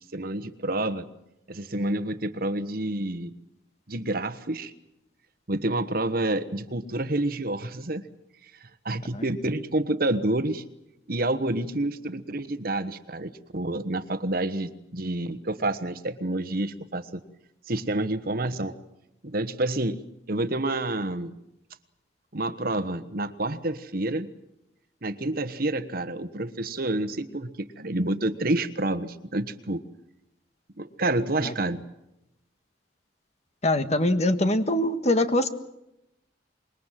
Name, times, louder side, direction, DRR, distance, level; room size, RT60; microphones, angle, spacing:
voice 1, 0.1-1.0 1.5-3.3 3.9-4.7 5.5-8.0 8.6-10.6 11.1-17.1 17.7-18.7 19.2-20.0 20.3-21.3 22.3-24.3 25.0-29.8 30.8-31.8, right 2 dB, 50° right, 12 dB, 1.3 m, -28 dB
voice 2, 33.6-35.5, left 1 dB, 35° left, 9 dB, 1.6 m, -23 dB
26.0 x 22.0 x 7.6 m, 0.86 s
head